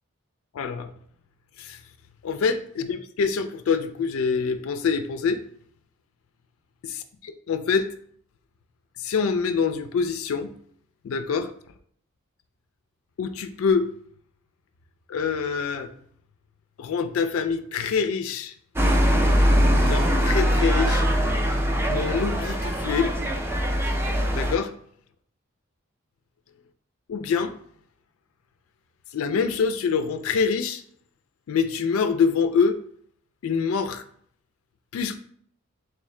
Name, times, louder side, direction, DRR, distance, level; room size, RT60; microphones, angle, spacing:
voice 1, 0.5-0.9 1.6-1.8 2.2-5.4 6.8-7.9 9.0-10.5 11.0-11.5 13.2-13.9 15.1-15.9 16.8-18.5 19.8-21.0 21.9-23.1 24.3-24.7 27.1-27.5 29.1-30.8 31.5-32.8 33.4-34.0 34.9-35.2, left 5 dB, 75° left, 9 dB, 0.3 m, -25 dB
sound 1, 18.8-24.6, equal, 10° right, 0.4 m, -22 dB
3.6 x 3.2 x 3.2 m, 0.62 s
head